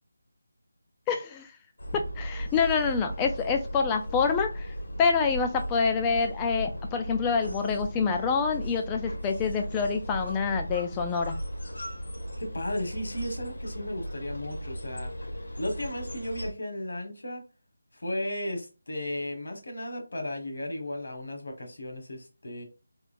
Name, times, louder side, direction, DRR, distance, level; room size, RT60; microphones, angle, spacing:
voice 1, 1.1-1.5 1.9-4.7 5.0-11.4, left 5 dB, 10° left, 0.3 m, -27 dB
sound 1, 1.8-16.5, equal, 80° left, 1.6 m, -37 dB
voice 2, 12.4-15.1 15.6-17.4 17.9-22.6, left 1 dB, 65° left, 1.3 m, -35 dB
3.7 x 3.0 x 2.5 m
figure-of-eight pair, 175°, 0 cm